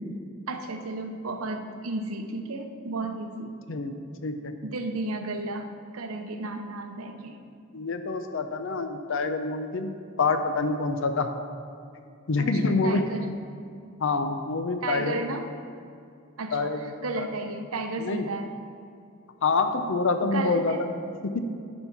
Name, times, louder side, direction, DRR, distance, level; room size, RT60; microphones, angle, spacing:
voice 1, 0.5-3.5 4.6-7.4 12.4-13.3 14.8-15.5 16.4-18.5 20.2-20.9, right 2 dB, 90° right, 6 dB, 0.7 m, -33 dB
voice 2, 4.2-4.5 7.7-9.9 10.2-11.3 12.3-13.1 14.0-15.2 16.5-17.3 18.0-18.2 19.4-20.7 21.2-21.4, left 3 dB, 65° left, 8 dB, 0.6 m, -26 dB
10.0 x 4.5 x 5.9 m, 2.5 s
head